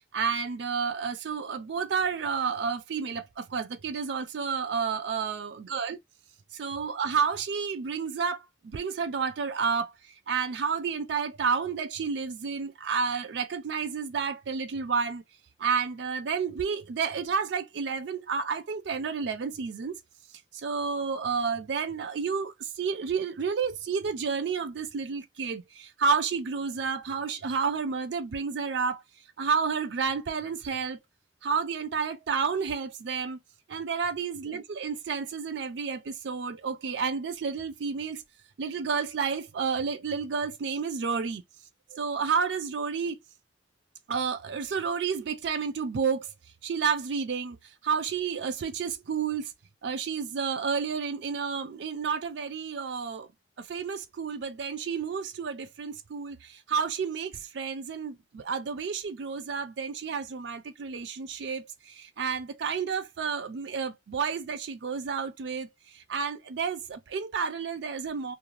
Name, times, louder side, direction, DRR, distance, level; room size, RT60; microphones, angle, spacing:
voice 1, 0.1-6.0 6.5-9.9 10.3-15.2 15.6-20.0 20.5-29.0 29.4-31.0 31.4-33.4 33.7-38.2 38.6-41.4 41.9-43.2 44.1-46.3 46.6-47.6 47.8-49.5 49.8-53.3 53.6-68.3, right 5 dB, 70° right, 0.4 m, -30 dB
2.4 x 2.1 x 3.0 m
head